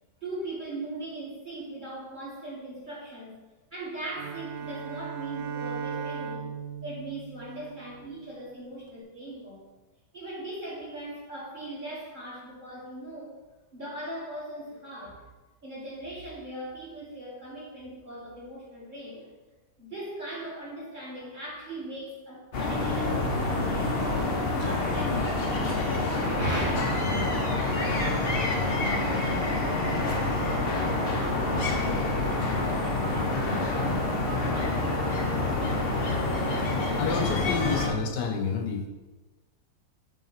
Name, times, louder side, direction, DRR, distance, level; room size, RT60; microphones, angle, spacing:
voice 1, 0.2-3.4 3.7-6.5 6.8-9.6 10.1-13.3 13.7-15.2 15.6-19.3 19.8-24.2 24.5-25.9 26.2-26.9, right 1 dB, 25° right, -6 dB, 1.9 m, -39 dB
Bowed string instrument, 4.1-8.3, right 6 dB, 90° right, 1.3 m, -37 dB
sound 1, 22.5-37.9, left 2 dB, 45° left, 0.8 m, -27 dB
voice 2, 37.0-38.9, left 5 dB, 75° left, 4 dB, 1.2 m, -29 dB
8.6 x 3.6 x 4.0 m, 1.2 s
omnidirectional pair, 1.9 m